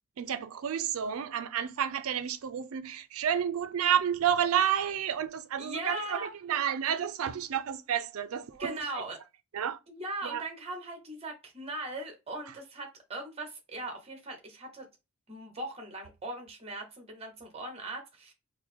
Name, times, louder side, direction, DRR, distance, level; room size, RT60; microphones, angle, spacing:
voice 1, 0.2-9.0 9.5-9.8 10.2-10.4, right 9 dB, 75° right, 0.4 m, -30 dB
voice 2, 5.6-6.3 8.6-9.2 9.9-14.9 15.3-18.3, right 2 dB, 30° right, 0.9 m, -39 dB
4.4 x 2.0 x 3.5 m
head